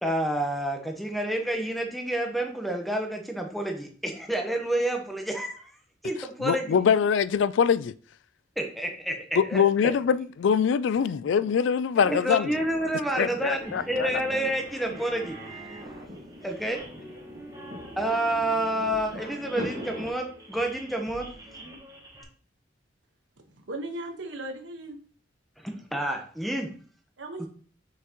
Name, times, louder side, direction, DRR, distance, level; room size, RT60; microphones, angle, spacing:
voice 1, 0.0-5.7 6.0-6.8 8.6-9.9 12.0-15.4 16.4-16.8 18.0-21.3 25.6-26.7, right 1 dB, ahead, 3 dB, 1.0 m, -29 dB
voice 2, 6.4-7.9 9.4-12.5 13.2-14.1, left 7 dB, 80° left, 18 dB, 0.3 m, -23 dB
sound 1, 12.5-20.1, equal, 35° right, 1.9 m, -43 dB
sound 2, 13.6-22.2, right 2 dB, 20° right, 1.6 m, -44 dB
voice 3, 23.4-25.0 27.2-27.5, right 2 dB, 80° right, 5 dB, 1.3 m, -37 dB
5.9 x 5.9 x 3.0 m, 0.43 s
head